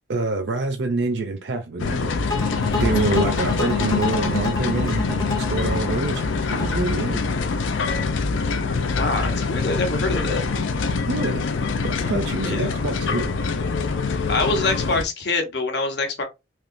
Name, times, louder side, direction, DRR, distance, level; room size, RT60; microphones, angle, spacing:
voice 1, 0.1-2.1 2.7-6.2 6.5-7.2 11.1-11.4 11.8-13.4, right 3 dB, 65° right, 0.5 m, -26 dB
sound 1, 1.8-15.0, left 4 dB, 85° left, 0.5 m, -24 dB
sound 2, 2.3-7.4, left 5 dB, 20° left, 0.6 m, -28 dB
voice 2, 8.9-10.4 12.4-12.8 14.3-16.2, left 3 dB, 60° left, 0.9 m, -25 dB
3.4 x 2.8 x 2.5 m
head